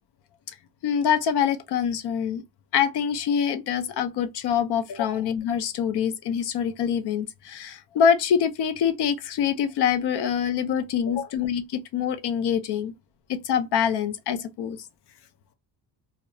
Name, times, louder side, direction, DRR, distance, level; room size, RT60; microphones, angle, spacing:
voice 1, 0.8-2.4 2.7-12.9 13.3-14.8, left 8 dB, 65° left, 0.6 m, -25 dB
2.3 x 2.1 x 2.8 m
cardioid pair, 140°, 43 cm